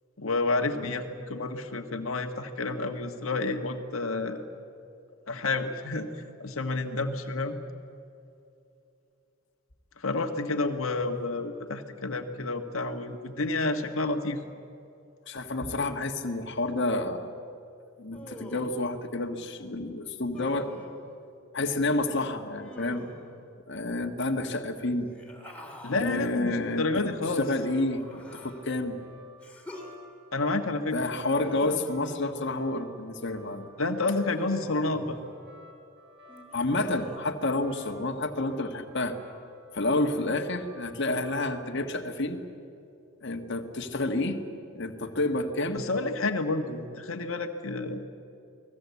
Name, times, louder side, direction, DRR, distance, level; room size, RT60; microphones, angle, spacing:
voice 1, 0.2-4.4 5.3-7.6 10.0-14.4 25.8-27.5 30.3-31.0 33.8-35.2 45.7-48.0, left 3 dB, 75° left, 4 dB, 1.6 m, -30 dB
voice 2, 15.3-17.3 18.0-20.7 21.5-23.0 23.7-25.1 25.9-27.1 27.4-29.0 30.9-33.7 36.5-39.1 39.7-42.4 43.2-44.4 44.7-45.8, left 2 dB, 55° left, 4 dB, 1.7 m, -29 dB
Human voice, 18.1-18.9 20.3-21.0 22.6-23.4 25.0-26.1 27.2-28.7 29.4-29.9 31.1-32.7 34.1-35.3 36.3-37.2, equal, 5° left, 3.5 m, -45 dB
sound 1, 26.4-41.7, equal, 55° right, 5.5 m, -53 dB
29.5 x 20.0 x 8.4 m, 2.6 s
head